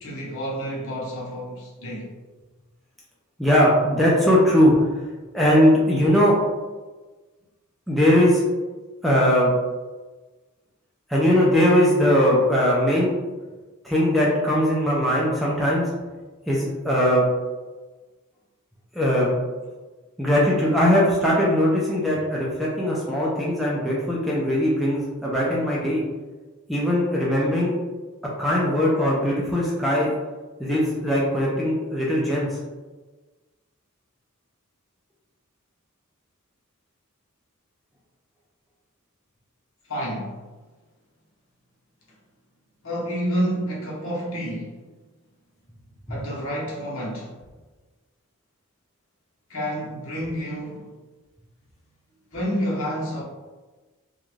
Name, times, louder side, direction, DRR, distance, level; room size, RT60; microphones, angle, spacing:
voice 1, 0.0-2.1 39.9-40.4 42.8-44.8 46.1-47.3 49.5-50.9 52.3-53.2, equal, 65° left, -4 dB, 0.8 m, -29 dB
voice 2, 3.4-4.7 5.3-6.4 7.9-8.4 9.0-9.5 11.1-13.1 13.8-15.9 16.5-17.3 18.9-19.3 20.2-26.0 26.7-27.7 28.4-30.1 30.6-32.5 46.1-46.2, equal, ahead, -6 dB, 0.4 m, -20 dB
2.5 x 2.2 x 3.0 m, 1.3 s
head